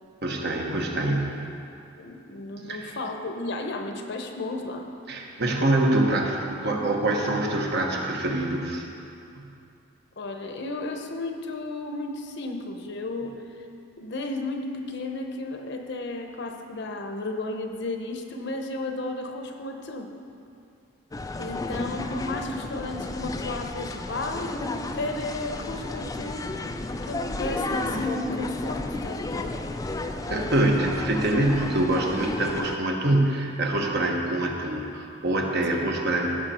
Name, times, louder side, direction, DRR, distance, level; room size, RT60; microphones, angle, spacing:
voice 1, 0.2-1.4 2.7-2.9 5.1-8.9 9.3-9.5 30.3-36.4, right 1 dB, 60° right, 1 dB, 1.2 m, -25 dB
voice 2, 2.0-4.9 10.2-13.6 14.0-20.1 21.4-29.6, left 2 dB, 60° left, 4 dB, 0.8 m, -33 dB
sound 1, 21.1-32.8, left 2 dB, 20° left, 0.4 m, -33 dB
15.5 x 6.1 x 4.3 m, 2.6 s
head